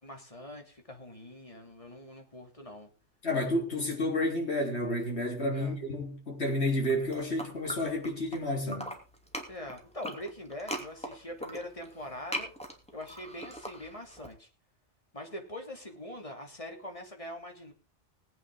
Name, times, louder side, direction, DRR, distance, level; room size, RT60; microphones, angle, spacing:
voice 1, 0.0-2.9 5.5-5.7 9.5-12.5 12.9-14.5 15.1-17.7, left 1 dB, 30° left, 2.9 m, -43 dB
voice 2, 3.2-8.9, left 1 dB, 70° left, 4.0 m, -30 dB
sound 1, 6.7-8.4 8.7-14.3, equal, 5° left, 2.8 m, -40 dB
20.5 x 9.1 x 3.7 m
omnidirectional pair, 1.2 m